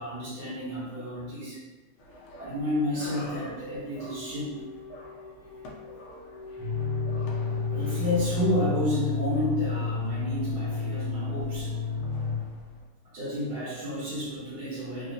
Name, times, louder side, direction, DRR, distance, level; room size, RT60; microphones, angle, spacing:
voice 1, 0.0-1.6 2.4-4.6 7.7-11.8 13.0-15.1, left 1 dB, 60° right, -8 dB, 1.3 m, -31 dB
sound 1, 2.0-12.9, left 1 dB, 80° left, 1.5 m, -47 dB
sound 2, 3.4-9.1, left 4 dB, 40° left, 0.8 m, -44 dB
sound 3, 6.6-12.4, left 4 dB, 15° right, 1.0 m, -30 dB
3.9 x 2.4 x 2.7 m, 1.2 s
omnidirectional pair, 2.3 m